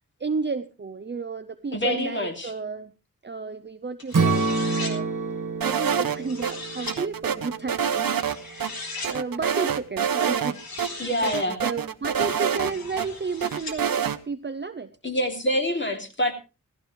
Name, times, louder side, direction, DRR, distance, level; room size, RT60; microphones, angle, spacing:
voice 1, 0.2-2.9 3.2-5.1 5.6-14.9, right 4 dB, 30° right, 9 dB, 0.6 m, -32 dB
voice 2, 1.7-2.5 11.0-11.6 15.0-16.3, left 1 dB, 30° left, 4 dB, 2.8 m, -26 dB
Knife Sharpen Large, 4.0-5.0 5.9-7.0 8.2-9.2 10.3-11.4 12.2-13.8, left 3 dB, 80° left, 3.2 m, -38 dB
Strum, 4.1-8.3, right 3 dB, 60° right, 1.5 m, -28 dB
sound 1, 5.6-6.5 6.9-8.4 8.6-8.7 9.0-10.5 10.8-10.9 11.2-13.1 13.4-14.2, right 8 dB, 75° right, 0.9 m, -26 dB
17.0 x 15.0 x 3.2 m, 0.30 s
wide cardioid pair, 90°, 35 cm